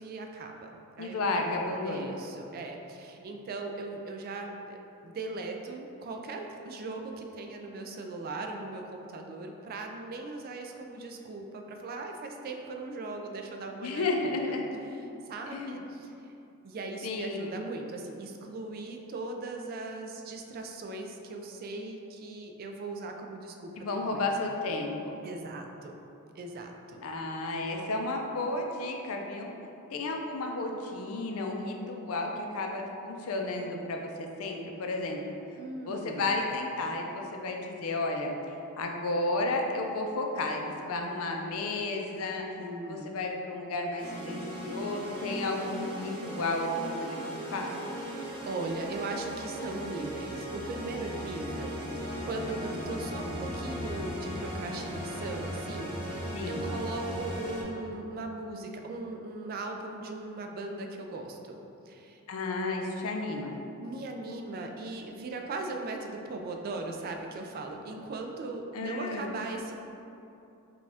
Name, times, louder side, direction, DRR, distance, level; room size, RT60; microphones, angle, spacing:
voice 1, 0.0-1.3 1.7-14.6 15.3-16.3 16.6-24.3 25.2-26.0 26.4-27.0 35.6-36.4 42.6-43.1 48.1-61.6 61.9-62.2 63.8-69.7, right 2 dB, 40° right, 3 dB, 0.3 m, -39 dB
voice 2, 1.0-2.1 13.8-14.7 15.5-15.8 17.0-17.5 23.8-25.2 27.0-29.5 29.9-35.2 35.8-38.3 38.8-42.5 42.9-47.2 47.5-47.7 56.3-56.7 62.3-63.6 68.7-69.3, left 2 dB, 70° left, 2 dB, 0.5 m, -32 dB
sound 1, 44.0-57.6, equal, 25° right, 0.7 m, -37 dB
4.9 x 2.3 x 3.4 m, 2.9 s
head